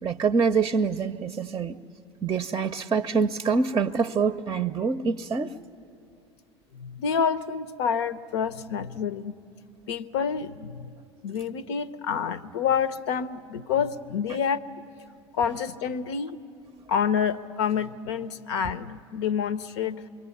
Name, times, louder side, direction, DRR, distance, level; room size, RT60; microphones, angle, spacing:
voice 1, 0.0-1.8 2.2-5.5, right 5 dB, 25° right, 9 dB, 0.6 m, -25 dB
voice 2, 6.7-9.3 9.9-10.9 11.2-14.6 15.4-16.4 16.9-20.0, left 7 dB, 70° left, 13 dB, 0.7 m, -28 dB
26.5 x 23.0 x 9.3 m, 2.5 s
hypercardioid pair, 75°, 15 cm